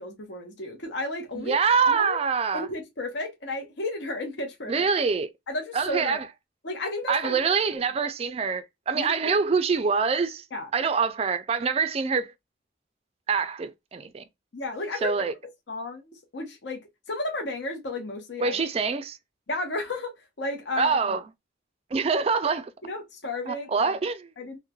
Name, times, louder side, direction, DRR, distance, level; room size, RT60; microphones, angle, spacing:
voice 1, 0.0-1.6 1.9-2.2 2.5-4.9 5.5-6.2 6.6-7.4 7.7-7.8 8.9-9.4 10.5-10.7 14.5-15.3 15.7-16.8 17.1-18.6 19.5-21.2 22.8-24.0 24.4-24.6, left 2 dB, 70° left, 0.8 m, -33 dB
voice 2, 1.4-2.7 4.7-5.3 5.7-6.2 7.1-10.4 10.7-12.3 13.3-14.2 15.0-15.3 18.4-19.2 20.8-21.2 21.9-22.7 23.5-24.3, right 5 dB, 35° right, 0.3 m, -25 dB
3.0 x 2.1 x 2.2 m
head